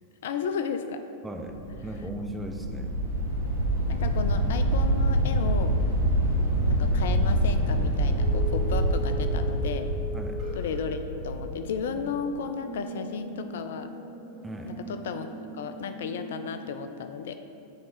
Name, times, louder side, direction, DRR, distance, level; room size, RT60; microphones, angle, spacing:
voice 1, 0.2-1.0 3.9-5.7 6.6-9.9 10.5-11.0 11.2-13.9 14.7-17.4, left 6 dB, 60° left, 8 dB, 0.3 m, -34 dB
voice 2, 1.2-1.6 1.8-2.9 10.1-10.4 14.4-14.7, right 1 dB, 10° right, 3 dB, 0.5 m, -37 dB
sound 1, 1.4-11.4, right 1 dB, 85° right, 1.1 m, -26 dB
sound 2, 6.6-16.6, equal, 40° right, 1.2 m, -40 dB
9.2 x 3.5 x 4.1 m, 2.7 s
figure-of-eight pair, 90°, 0 cm